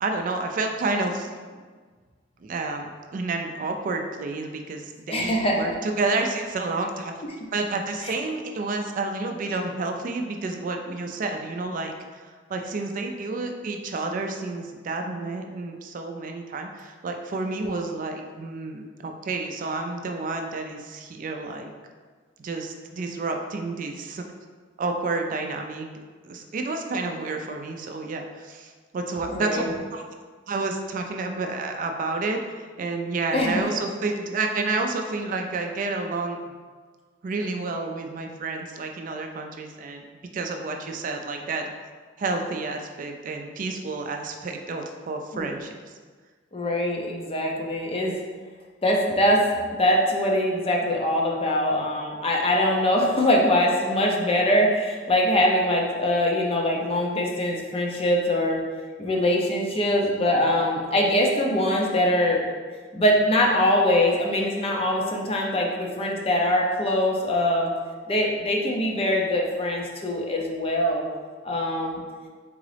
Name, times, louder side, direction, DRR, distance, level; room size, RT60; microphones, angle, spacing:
voice 1, 0.0-1.6 2.4-7.1 7.5-21.7 22.4-24.3 24.8-25.9 26.2-30.0 30.5-36.4 37.2-40.0 40.3-41.7 42.2-45.7, right 3 dB, 45° right, 4 dB, 0.3 m, -30 dB
voice 2, 5.1-5.7 29.3-29.7 33.3-33.6 45.3-45.5 46.5-48.1 48.8-58.6 59.0-62.4 62.9-67.7 68.1-71.0 71.4-72.0, left 1 dB, 30° left, 0 dB, 0.6 m, -23 dB
3.8 x 3.6 x 3.3 m, 1.5 s
head